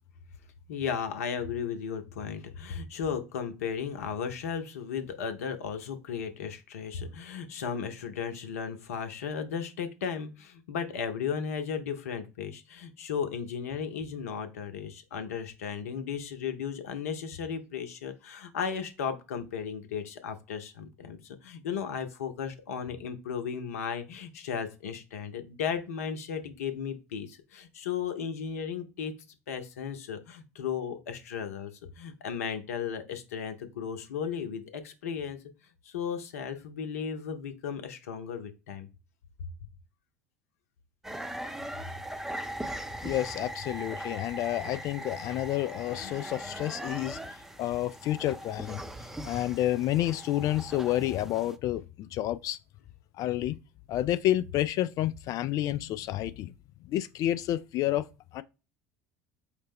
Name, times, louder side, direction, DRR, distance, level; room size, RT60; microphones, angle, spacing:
voice 1, 0.7-29.1 29.5-31.7 32.0-35.4 35.8-38.9, left 7 dB, 70° left, 0.7 m, -35 dB
sound 1, 41.0-51.6, right 1 dB, 5° right, 0.5 m, -40 dB
voice 2, 43.0-47.2 47.6-48.8 49.3-52.6 53.2-53.6 53.9-56.5 56.8-58.1 58.3-58.4, left 13 dB, 45° left, 0.3 m, -29 dB
4.8 x 2.1 x 3.4 m
figure-of-eight pair, 70°, 8 cm